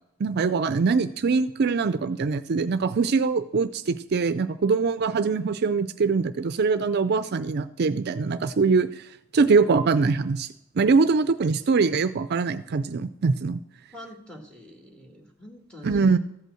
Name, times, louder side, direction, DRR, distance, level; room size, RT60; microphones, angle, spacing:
voice 1, 0.2-9.0 9.3-10.5 10.8-13.6 15.8-16.2, right 4 dB, 55° right, 12 dB, 0.4 m, -23 dB
voice 2, 13.9-16.2, equal, 5° left, 3 dB, 1.8 m, -45 dB
14.0 x 5.5 x 7.7 m, 0.83 s
head